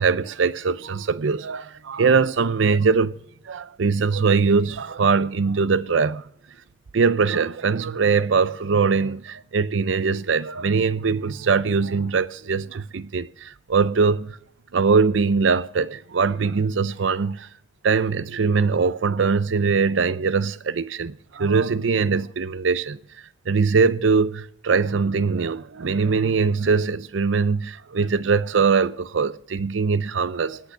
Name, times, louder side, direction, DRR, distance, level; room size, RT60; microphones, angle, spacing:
voice 1, 0.0-3.2 3.5-6.2 6.9-14.4 14.7-17.5 17.8-23.0 23.5-30.6, right 5 dB, 80° right, 0.5 m, -22 dB
18.5 x 8.4 x 6.0 m
head